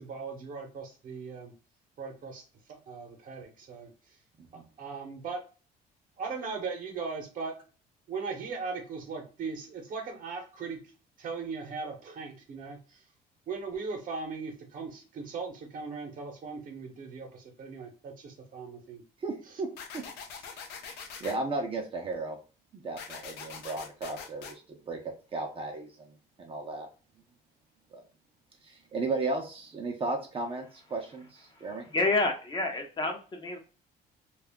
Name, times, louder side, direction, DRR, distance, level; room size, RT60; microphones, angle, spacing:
voice 1, 0.0-1.5 2.0-2.4 2.7-3.9 4.5-5.4 6.2-7.5 8.1-10.8 11.2-13.0 13.5-19.0, right 4 dB, 55° right, 3 dB, 0.9 m, -38 dB
voice 2, 19.2-20.0 20.4-20.8 21.2-22.4 22.7-26.9 27.9-28.0 28.6-31.8, right 3 dB, 35° right, 2 dB, 0.6 m, -35 dB
sound 1, 19.8-21.4 23.0-24.5, left 6 dB, 80° left, 0.5 m, -43 dB
voice 3, 31.9-33.6, left 2 dB, 25° left, 3 dB, 0.6 m, -28 dB
2.4 x 2.1 x 3.4 m, 0.35 s
cardioid pair, 110°, 17 cm